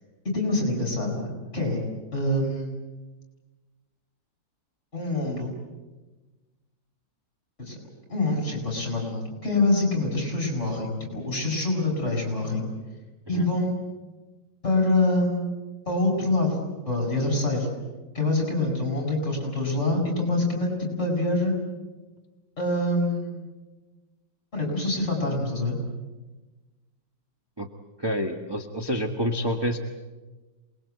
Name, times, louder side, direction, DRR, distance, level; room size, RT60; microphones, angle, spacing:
voice 1, 0.3-1.3 1.5-1.8 2.1-2.7 4.9-5.5 7.6-7.8 8.1-12.7 13.3-13.8 14.6-15.4 15.9-16.6 16.9-17.7 18.1-21.6 22.6-23.5 24.5-25.8, left 2 dB, 40° left, 2 dB, 7.2 m, -25 dB
voice 2, 28.0-29.8, equal, 15° right, 2 dB, 1.3 m, -28 dB
27.5 x 21.0 x 8.1 m, 1.2 s
omnidirectional pair, 2.0 m